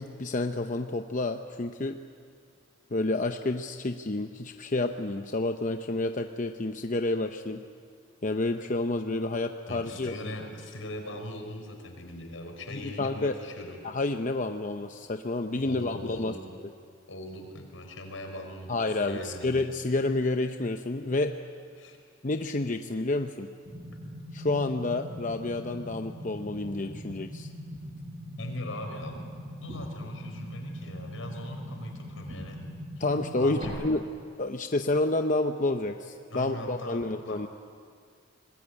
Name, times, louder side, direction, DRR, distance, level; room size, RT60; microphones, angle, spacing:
voice 1, 0.0-2.0 2.9-7.6 8.2-10.1 12.7-13.3 13.8-16.3 18.7-21.4 22.2-23.5 24.3-27.5 33.0-34.0 34.4-37.5, left 2 dB, 40° left, 6 dB, 0.8 m, -29 dB
voice 2, 9.7-13.8 15.6-16.4 17.1-19.6 21.8-22.0 28.4-32.6 33.0-33.1 33.4-33.8 36.3-37.5, left 1 dB, 85° left, 3 dB, 5.0 m, -40 dB
sound 1, 23.7-33.7, equal, 35° right, 7.8 m, -41 dB
25.5 x 19.5 x 9.8 m, 2.2 s
head